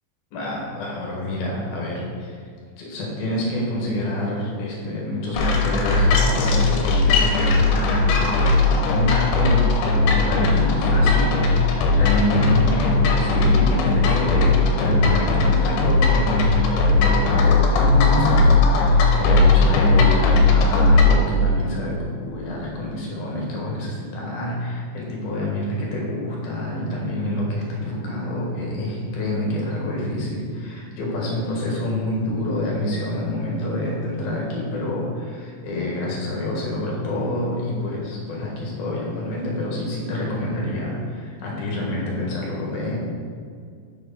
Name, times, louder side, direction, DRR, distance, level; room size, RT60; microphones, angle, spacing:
voice 1, 0.3-2.4 2.8-9.7 9.9-43.0, left 1 dB, 65° left, -3 dB, 3.0 m, -27 dB
sound 1, 5.3-21.2, left 3 dB, 85° left, 3.2 m, -18 dB
7.5 x 4.9 x 5.6 m, 2.1 s
omnidirectional pair, 5.2 m